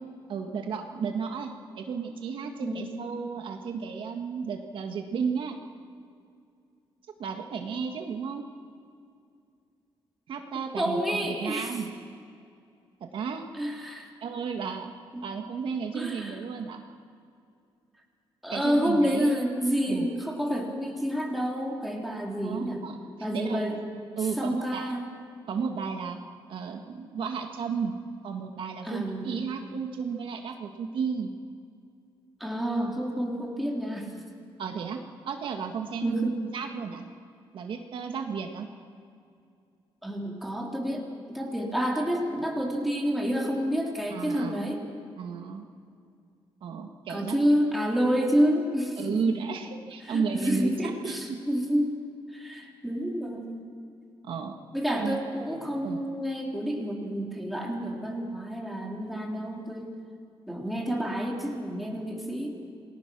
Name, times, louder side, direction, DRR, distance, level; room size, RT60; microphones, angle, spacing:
voice 1, 0.3-5.6 7.2-8.5 10.3-11.9 13.0-13.5 14.2-14.9 15.2-16.8 18.5-19.5 19.9-20.1 22.4-23.0 23.3-23.6 24.2-24.9 25.5-26.2 26.5-28.0 28.2-31.3 34.6-35.0 35.3-37.1 37.5-38.7 44.1-44.7 45.2-45.7 46.6-47.4 49.0-51.4 52.5-52.6 54.2-54.6 55.0-55.2 55.8-56.0, right 6 dB, 65° right, 4 dB, 1.7 m, -33 dB
voice 2, 2.6-2.9 10.8-11.8 13.5-14.1 15.1-15.2 15.9-16.4 18.4-22.8 23.2-23.8 24.4-25.0 28.8-29.4 32.4-34.1 36.0-36.4 40.0-44.8 47.1-49.2 50.0-52.0 52.3-53.6 54.7-59.9 60.5-62.5, equal, ahead, -1 dB, 3.2 m, -29 dB
28.0 x 20.0 x 6.2 m, 2.4 s
wide cardioid pair, 165°, 9 cm